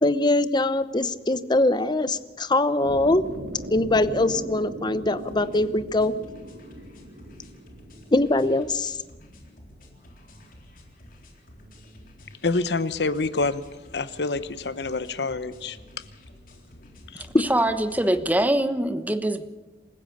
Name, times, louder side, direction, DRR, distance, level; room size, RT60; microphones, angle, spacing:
voice 1, 0.0-3.3 3.7-6.1 8.1-9.0 17.3-17.4, left 2 dB, 25° left, 14 dB, 0.9 m, -22 dB
sound 1, 2.8-8.9, equal, 85° right, 3.5 m, -39 dB
sound 2, 5.2-18.4, left 1 dB, 55° left, 4.0 m, -50 dB
voice 2, 12.4-13.6 13.9-15.8 17.1-17.3, left 3 dB, 70° left, 14 dB, 1.0 m, -27 dB
voice 3, 17.4-19.5, right 1 dB, 10° right, 10 dB, 1.1 m, -23 dB
27.5 x 16.0 x 6.7 m, 1.2 s
head